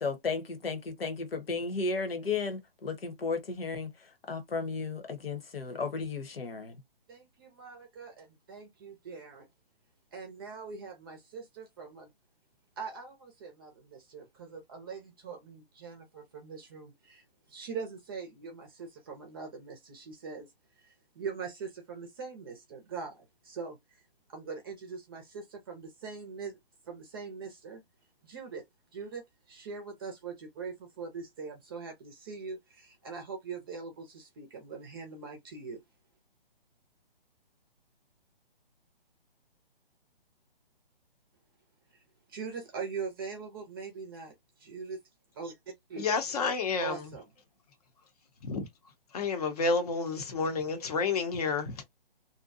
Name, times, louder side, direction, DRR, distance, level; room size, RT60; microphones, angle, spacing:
voice 1, 0.0-6.8, left 4 dB, 75° left, 1.1 m, -34 dB
voice 2, 7.1-9.5 10.1-12.1 12.8-20.5 20.8-24.0 24.3-26.6 26.8-27.8 28.2-28.6 28.9-35.8 41.9-42.0 42.3-45.0 45.3-45.6 45.9-46.1 46.8-47.3, right 5 dB, 25° right, 0.6 m, -42 dB
voice 3, 46.0-46.9 48.4-48.7 49.1-51.8, left 4 dB, 40° left, 0.8 m, -30 dB
2.6 x 2.2 x 2.5 m
hypercardioid pair, 155°, 29 cm